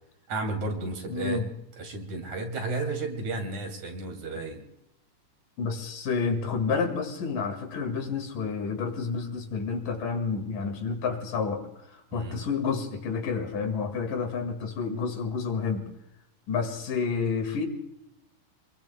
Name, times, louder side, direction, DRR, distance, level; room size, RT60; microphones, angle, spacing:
voice 1, 0.3-1.4 1.8-4.6 12.1-12.4, right 2 dB, 60° right, 3 dB, 3.9 m, -33 dB
voice 2, 1.1-1.5 5.6-15.9 16.5-17.7, left 5 dB, 75° left, 6 dB, 3.4 m, -30 dB
28.0 x 22.0 x 2.2 m, 0.83 s
omnidirectional pair, 3.8 m